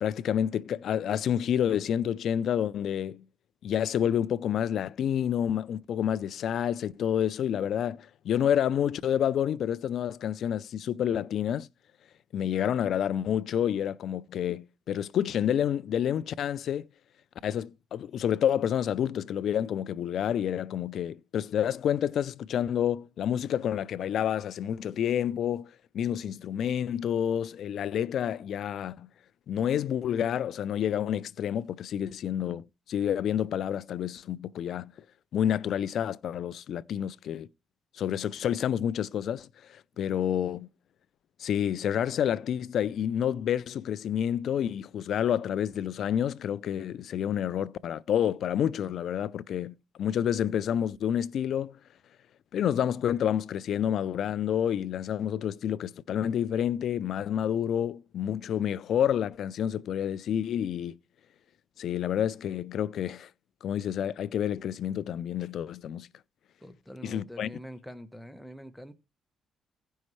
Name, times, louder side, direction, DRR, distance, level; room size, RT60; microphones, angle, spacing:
voice 1, 0.0-3.2 3.6-11.7 12.3-16.9 17.4-25.7 25.9-29.1 29.5-34.9 35.3-37.5 37.9-40.7 41.4-51.8 52.5-61.0 61.8-63.3 63.6-66.1 67.0-67.5, left 9 dB, 70° left, 0.4 m, -29 dB
voice 2, 66.6-68.9, equal, 5° left, 1.1 m, -44 dB
16.0 x 5.5 x 3.2 m
cardioid pair, 90°, 0 cm